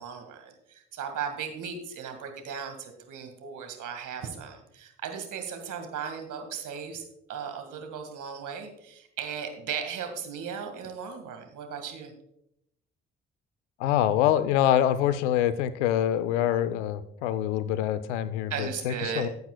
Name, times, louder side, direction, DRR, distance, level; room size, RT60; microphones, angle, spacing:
voice 1, 0.0-7.0 7.3-12.1 18.5-19.3, right 7 dB, 60° right, 6 dB, 1.9 m, -36 dB
voice 2, 13.8-19.3, left 11 dB, 80° left, 15 dB, 0.6 m, -25 dB
15.0 x 7.9 x 2.3 m, 0.77 s
hypercardioid pair, 45°, 34 cm